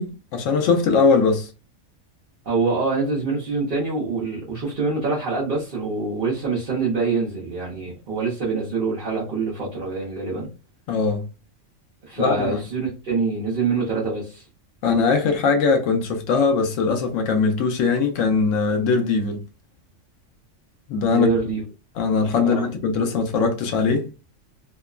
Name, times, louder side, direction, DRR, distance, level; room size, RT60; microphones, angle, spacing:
voice 1, 0.0-1.5 10.9-11.2 12.2-12.6 14.8-19.4 20.9-21.3 22.0-24.1, left 4 dB, 80° left, 1.0 m, -21 dB
voice 2, 2.4-10.5 12.0-14.4 21.1-21.6 22.4-22.7, right 4 dB, 50° right, 0.8 m, -25 dB
2.9 x 2.0 x 2.3 m
omnidirectional pair, 1.3 m